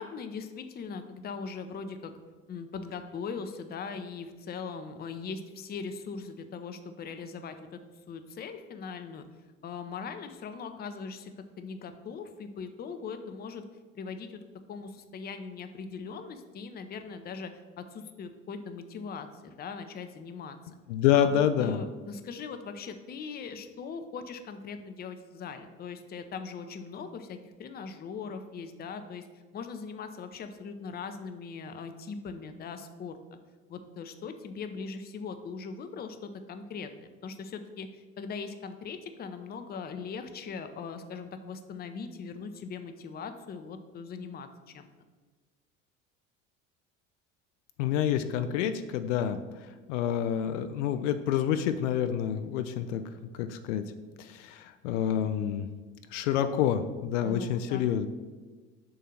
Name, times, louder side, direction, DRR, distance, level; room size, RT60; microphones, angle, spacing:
voice 1, 0.0-2.1 2.5-7.8 8.1-9.2 9.6-11.3 11.6-13.6 13.9-14.4 14.7-20.6 21.2-29.2 29.5-33.4 33.7-44.5 44.7-44.9 57.2-57.8, left 5 dB, 25° left, 8 dB, 0.6 m, -40 dB
voice 2, 20.9-21.8 47.8-49.4 49.9-53.0 53.4-53.8 54.2-55.7 56.1-58.1, left 9 dB, 65° left, 9 dB, 0.5 m, -27 dB
7.5 x 2.7 x 5.8 m, 1.3 s
hypercardioid pair, 70°, 39 cm